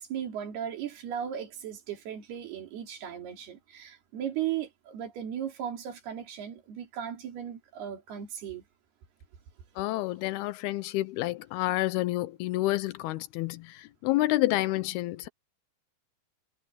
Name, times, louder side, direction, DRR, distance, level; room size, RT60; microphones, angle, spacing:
voice 1, 0.0-8.6, right 9 dB, 80° right, 4.9 m, -36 dB
voice 2, 9.8-15.3, left 17 dB, 90° left, 2.7 m, -29 dB
omnidirectional pair, 4.5 m